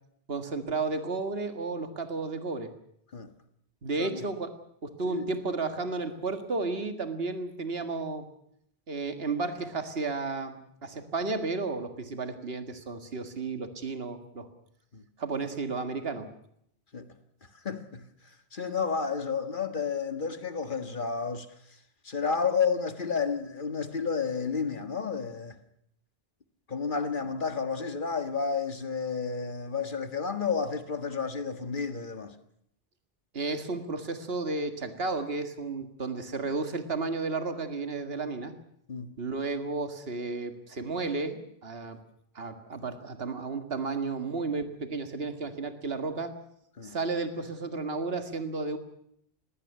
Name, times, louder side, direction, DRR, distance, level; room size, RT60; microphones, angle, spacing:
voice 1, 0.3-2.7 3.8-4.5 4.8-8.3 8.9-14.5 15.2-16.3 33.3-38.5 39.2-42.0 42.4-46.3 46.8-48.8, right 3 dB, 70° right, 2.1 m, -33 dB
voice 2, 17.6-18.1 18.5-21.5 22.1-25.6 26.7-32.3 38.9-39.2 46.8-47.0, left 5 dB, 55° left, 1.8 m, -31 dB
20.0 x 16.5 x 9.4 m
omnidirectional pair, 1.1 m